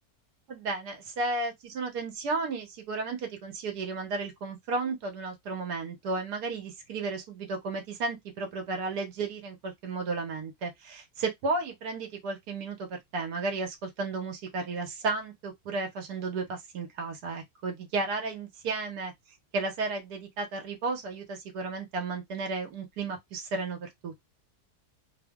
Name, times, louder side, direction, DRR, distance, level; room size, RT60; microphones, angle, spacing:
voice 1, 0.5-19.1 19.5-24.3, right 3 dB, 90° right, 1.5 m, -33 dB
3.2 x 2.0 x 3.5 m
omnidirectional pair, 1.6 m